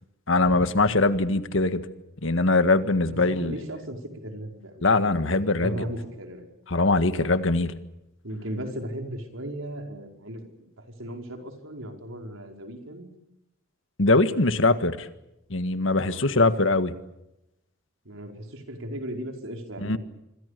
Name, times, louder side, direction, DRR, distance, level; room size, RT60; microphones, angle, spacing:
voice 1, 0.3-1.8 2.2-3.5 4.8-5.8 6.7-7.7 14.0-15.1 15.5-16.9 19.8-20.0, left 2 dB, 65° left, 11 dB, 1.7 m, -22 dB
voice 2, 3.1-6.5 7.1-7.3 8.2-13.1 16.0-16.2 18.1-20.0, right 1 dB, 75° right, 4 dB, 5.2 m, -37 dB
27.0 x 25.5 x 6.8 m, 0.88 s
head